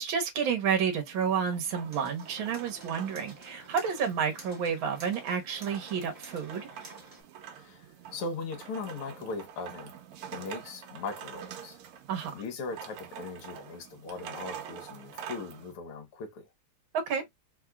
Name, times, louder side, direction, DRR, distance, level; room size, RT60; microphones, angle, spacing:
voice 1, 0.0-6.7 12.1-12.3 16.9-17.2, right 7 dB, 70° right, 1.7 m, -30 dB
sound 1, 0.9-15.7, right 8 dB, 90° right, 1.7 m, -46 dB
sound 2, 1.9-7.2, right 2 dB, 30° right, 0.9 m, -51 dB
voice 2, 7.5-10.0 10.3-11.8 12.3-16.5, left 3 dB, 80° left, 2.0 m, -39 dB
4.2 x 2.9 x 2.3 m
omnidirectional pair, 2.4 m